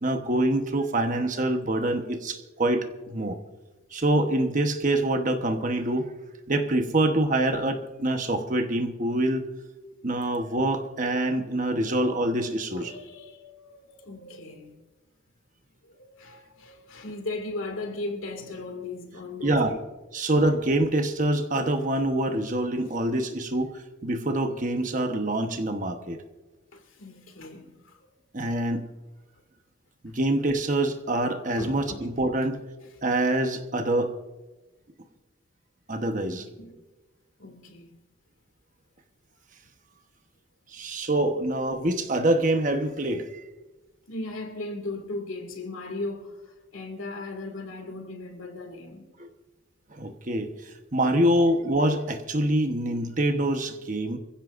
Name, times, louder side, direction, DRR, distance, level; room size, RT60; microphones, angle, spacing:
voice 1, 0.0-3.4 3.9-6.1 6.5-9.4 10.0-12.9 19.4-19.8 20.1-23.7 24.0-26.2 28.3-28.9 30.0-32.6 33.0-34.1 35.9-36.4 40.7-43.4 49.2-49.3 49.9-54.2, right 1 dB, 40° right, 1.1 m, -25 dB
voice 2, 12.7-14.8 15.8-19.8 26.7-28.0 31.6-32.0 36.3-36.8 37.4-38.0 44.1-49.1, left 2 dB, 85° left, 2.3 m, -37 dB
24.0 x 16.0 x 2.6 m
head